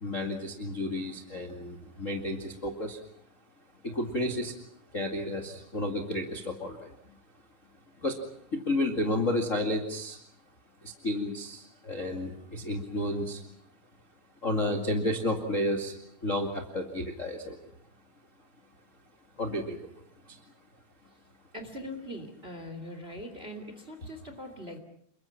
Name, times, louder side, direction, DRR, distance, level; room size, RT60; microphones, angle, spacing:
voice 1, 0.0-3.0 3.8-4.5 4.9-6.9 8.0-8.2 8.7-10.2 10.8-13.4 14.4-15.9 16.2-17.5 19.4-19.8, left 1 dB, 45° left, 2 dB, 1.0 m, -31 dB
voice 2, 21.5-24.8, equal, 20° right, 7 dB, 1.7 m, -41 dB
29.0 x 23.5 x 5.9 m, 0.67 s
omnidirectional pair, 5.4 m